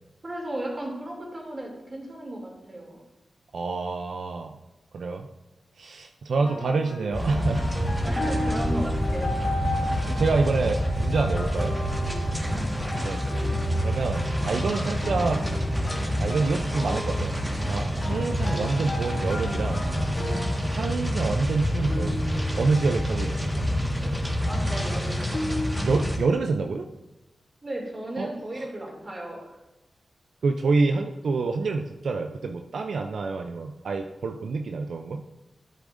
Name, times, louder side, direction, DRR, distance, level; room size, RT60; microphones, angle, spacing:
voice 1, 0.2-3.0 8.0-9.4 12.5-13.2 24.5-25.5 27.6-29.6, right 1 dB, 35° right, -1 dB, 2.7 m, -35 dB
voice 2, 3.5-4.6 4.9-5.3 5.8-7.7 10.1-11.8 13.0-13.2 13.8-15.4 16.2-17.4 17.7-19.8 20.7-22.2 22.6-23.7 25.8-26.9 28.2-28.3 28.6-28.7 30.4-35.2, right 4 dB, 85° right, 5 dB, 0.5 m, -27 dB
sound 1, 6.4-25.8, left 1 dB, 60° left, 2.3 m, -36 dB
sound 2, 7.1-26.2, equal, 5° right, 1.5 m, -27 dB
13.5 x 8.2 x 2.6 m, 0.99 s
wide cardioid pair, 100°, 0 cm